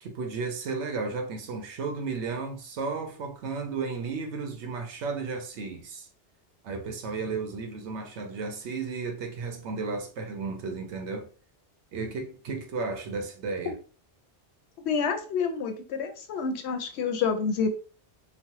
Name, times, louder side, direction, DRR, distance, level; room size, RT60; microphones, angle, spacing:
voice 1, 0.0-6.1 6.6-11.3 11.9-13.8, right 4 dB, 80° right, 1.0 m, -34 dB
voice 2, 14.9-17.7, left 5 dB, 75° left, 0.8 m, -28 dB
3.1 x 2.0 x 2.9 m
omnidirectional pair, 1.2 m